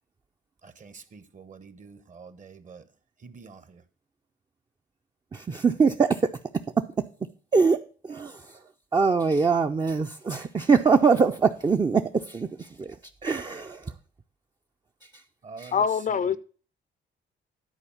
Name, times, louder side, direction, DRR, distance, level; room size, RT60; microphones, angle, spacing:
voice 1, 0.6-2.8 3.2-3.8 15.4-16.4, right 5 dB, 40° right, 1.0 m, -46 dB
voice 2, 5.3-6.2 7.5-8.4 8.9-13.0 13.2-13.8 15.6-15.7, right 5 dB, 20° right, 0.5 m, -23 dB
voice 3, 15.7-16.4, left 7 dB, 40° left, 0.5 m, -24 dB
10.0 x 4.4 x 7.0 m
cardioid pair, 90°, 20 cm